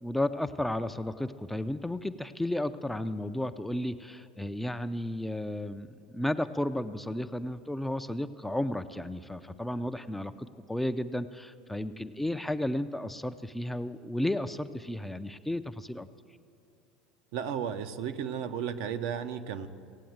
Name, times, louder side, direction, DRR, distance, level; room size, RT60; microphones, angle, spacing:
voice 1, 0.0-16.1, left 1 dB, 5° left, 10 dB, 0.5 m, -33 dB
voice 2, 17.3-19.7, right 8 dB, 60° right, 9 dB, 0.7 m, -34 dB
16.5 x 8.5 x 7.8 m, 2.5 s
hypercardioid pair, 75°, 3 cm